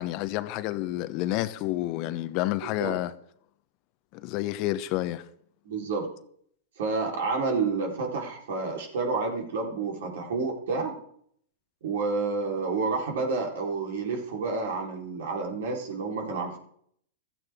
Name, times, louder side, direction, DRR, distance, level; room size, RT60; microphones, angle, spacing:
voice 1, 0.0-3.1 4.1-5.2, left 16 dB, 45° left, 0.9 m, -29 dB
voice 2, 5.6-6.1 6.8-11.0 11.8-16.6, right 4 dB, 65° right, 4.1 m, -29 dB
15.5 x 13.5 x 3.7 m
hypercardioid pair, 105°, 0 cm